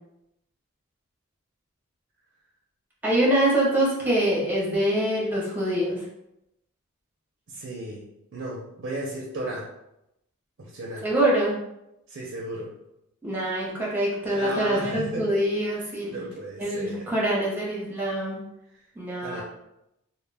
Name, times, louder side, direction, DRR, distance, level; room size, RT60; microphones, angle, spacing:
voice 1, 3.0-6.0 11.0-11.5 13.2-16.3 16.6-18.4 19.0-19.4, right 1 dB, 10° right, -5 dB, 0.7 m, -24 dB
voice 2, 7.5-8.0 8.3-9.7 10.6-11.1 12.1-12.7 14.3-15.4 16.1-17.1 19.2-19.4, right 1 dB, 50° right, -3 dB, 0.4 m, -34 dB
2.2 x 2.1 x 3.3 m, 0.85 s
head